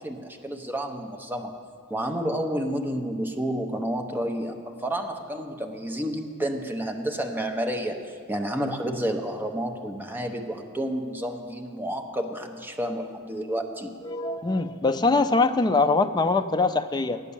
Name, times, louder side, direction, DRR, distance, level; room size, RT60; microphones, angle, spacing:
voice 1, 0.0-1.5 1.9-13.9, right 1 dB, 10° right, 3 dB, 0.7 m, -30 dB
voice 2, 14.0-17.2, left 3 dB, 20° left, 9 dB, 0.3 m, -23 dB
9.8 x 8.2 x 6.9 m, 2.1 s
head